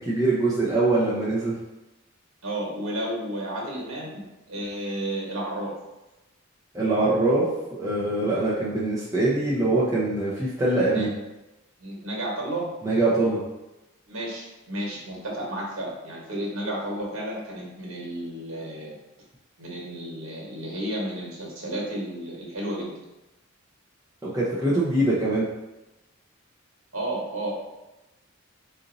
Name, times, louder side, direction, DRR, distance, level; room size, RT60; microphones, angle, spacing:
voice 1, 0.0-1.6 6.7-11.1 12.8-13.4 24.2-25.5, right 2 dB, 15° right, -8 dB, 0.6 m, -23 dB
voice 2, 2.4-4.2 4.5-5.7 10.9-11.1 11.8-12.7 14.1-18.9 19.6-22.9 26.9-27.5, right 1 dB, 75° right, -3 dB, 1.4 m, -32 dB
4.2 x 2.6 x 3.9 m, 0.99 s
head